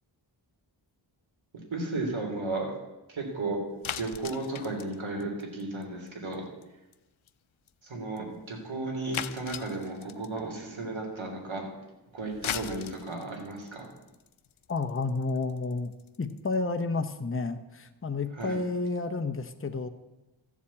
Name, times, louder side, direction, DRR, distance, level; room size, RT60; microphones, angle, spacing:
voice 1, 1.7-2.7 3.1-3.6 4.0-6.4 7.8-11.6 12.1-13.9 18.3-18.5, right 2 dB, 80° right, 1 dB, 3.5 m, -34 dB
sound 1, 3.8-6.1 6.3-6.6 6.9-7.0 7.3-7.4 7.7-7.8 8.2-8.3 9.1-10.4 12.2-16.5, left 10 dB, 85° left, 0.7 m, -38 dB
voice 2, 14.7-15.9 16.2-19.9, left 3 dB, 30° left, 7 dB, 0.9 m, -31 dB
14.0 x 7.4 x 8.4 m, 1.0 s
wide cardioid pair, 80°, 47 cm